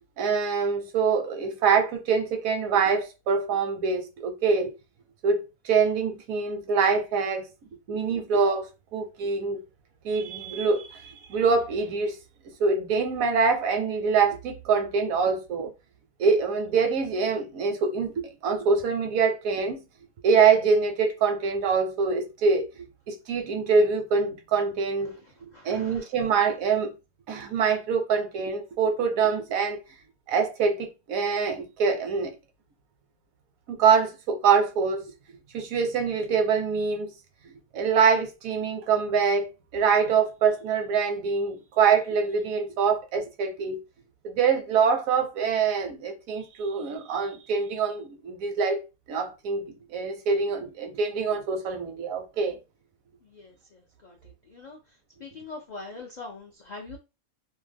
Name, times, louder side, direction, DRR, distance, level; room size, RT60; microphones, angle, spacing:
voice 1, 0.2-4.7 5.2-7.5 7.9-9.6 10.0-12.2 12.6-15.7 16.2-19.8 20.2-22.7 23.1-25.1 25.4-26.9 27.3-29.8 30.3-32.3 33.7-35.0 35.5-37.1 37.7-43.8 44.2-52.6, right 5 dB, 80° right, 1.0 m, -24 dB
voice 2, 25.5-26.1 53.2-54.2 54.5-54.8 55.2-57.0, left 3 dB, 85° left, 0.3 m, -43 dB
2.6 x 2.2 x 3.3 m
omnidirectional pair, 1.5 m